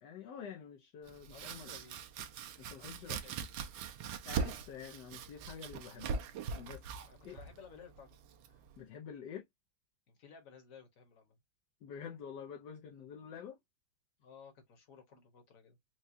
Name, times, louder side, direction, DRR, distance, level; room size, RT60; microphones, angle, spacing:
voice 1, 0.0-1.7 2.6-3.2 4.2-6.2 6.5-6.8 7.2-7.4 8.8-9.4 11.8-13.6, left 7 dB, 70° left, 1.2 m, -47 dB
Domestic sounds home sounds, 1.0-8.8, right 6 dB, 90° right, 1.4 m, -42 dB
voice 2, 1.3-2.0 2.8-3.3 7.1-8.1 10.1-11.4 14.2-15.8, left 6 dB, 50° left, 1.6 m, -56 dB
4.8 x 2.3 x 2.6 m
omnidirectional pair, 2.1 m